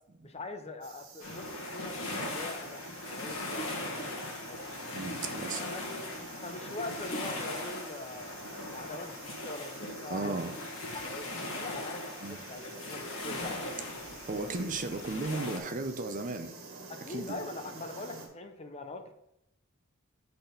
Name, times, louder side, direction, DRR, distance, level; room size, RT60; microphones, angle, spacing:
voice 1, 0.2-4.7 5.5-6.1 6.4-8.4 8.7-10.3 10.9-14.5 16.9-19.1, left 2 dB, 30° left, 0.6 m, -43 dB
sound 1, 0.8-18.3, right 4 dB, 65° right, 1.6 m, -50 dB
sound 2, 1.2-15.6, left 1 dB, 65° left, 1.6 m, -39 dB
voice 2, 4.8-5.7 10.1-10.5 12.2-12.4 14.3-16.5 17.1-17.4, right 3 dB, 35° right, 0.6 m, -35 dB
6.1 x 4.2 x 5.2 m
head